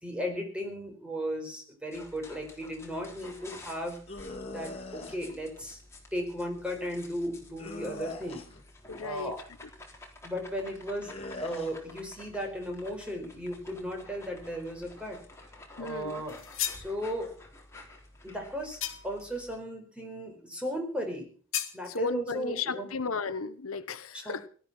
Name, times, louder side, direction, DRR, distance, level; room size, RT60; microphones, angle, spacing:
voice 1, 0.0-4.0 4.5-5.8 6.1-8.4 9.0-9.4 10.2-15.2 15.8-16.4 16.7-17.4 18.2-21.3 21.7-22.9 24.2-24.5, equal, 5° right, 2 dB, 4.6 m, -36 dB
sound 1, 1.9-19.6, left 2 dB, 15° left, 3.9 m, -51 dB
sound 2, 4.1-5.2 7.6-8.6 11.0-11.7, left 2 dB, 30° left, 2.9 m, -41 dB
voice 2, 8.9-9.3 15.8-16.2 17.8-17.9 21.9-24.5, left 4 dB, 80° left, 13 dB, 1.0 m, -34 dB
sound 3, 16.3-16.9 18.8-19.3 21.5-21.8, left 11 dB, 65° left, 2.0 m, -34 dB
18.0 x 12.0 x 6.0 m, 0.44 s
head